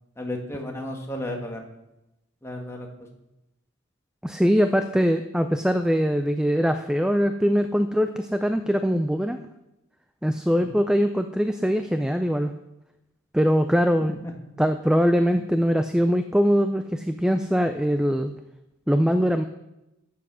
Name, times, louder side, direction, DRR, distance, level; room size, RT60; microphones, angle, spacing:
voice 1, 0.2-1.6 2.4-2.9 10.6-10.8 14.2-14.3, left 1 dB, 10° left, 1 dB, 1.6 m, -33 dB
voice 2, 4.2-9.4 10.2-12.5 13.3-14.2 14.6-18.3 18.9-19.4, equal, 5° right, 8 dB, 0.3 m, -22 dB
14.0 x 7.1 x 6.2 m, 0.93 s
head